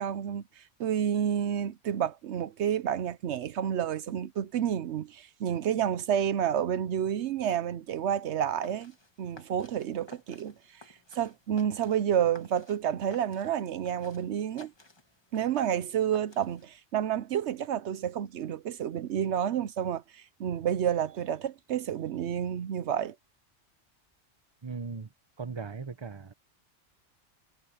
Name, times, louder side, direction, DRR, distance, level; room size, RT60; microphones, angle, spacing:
voice 1, 0.0-8.9 9.2-10.8 11.1-14.7 15.3-23.1, right 9 dB, 75° right, 0.9 m, -30 dB
sound 1, 8.4-16.8, left 2 dB, 25° left, 1.5 m, -56 dB
voice 2, 24.6-25.1 25.4-26.3, right 5 dB, 25° right, 1.0 m, -38 dB
omnidirectional pair, 1.2 m